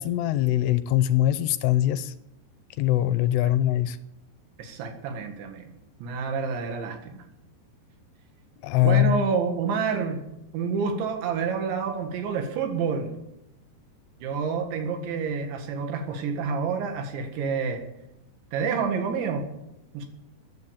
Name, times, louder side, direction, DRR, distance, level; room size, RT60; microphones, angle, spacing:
voice 1, 0.0-2.1 2.8-4.0 8.6-9.2, left 13 dB, 80° left, 13 dB, 2.6 m, -22 dB
voice 2, 4.6-5.7 6.0-7.2 8.8-10.2 10.5-13.1 14.2-17.8 18.5-19.4 19.9-20.1, right 5 dB, 85° right, 5 dB, 4.1 m, -28 dB
14.5 x 9.4 x 7.1 m, 0.86 s
omnidirectional pair, 5.1 m